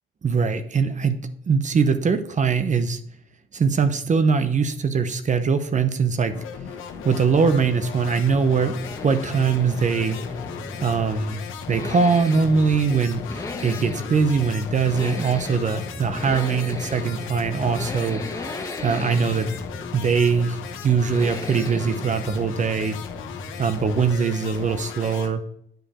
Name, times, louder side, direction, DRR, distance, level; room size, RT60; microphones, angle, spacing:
voice 1, 0.2-3.0 3.5-6.3 7.0-8.8 9.0-10.2 10.8-11.4 11.7-18.2 18.8-19.5 19.9-23.0 23.6-25.4, right 5 dB, 40° right, 10 dB, 0.8 m, -22 dB
sound 1, 6.3-25.3, left 8 dB, 85° left, 1.0 m, -37 dB
Accelerating revving vroom, 6.5-24.4 24.6-24.7, left 2 dB, 15° left, 1.1 m, -36 dB
9.1 x 5.1 x 4.3 m, 0.69 s
cardioid pair, 90°, 20 cm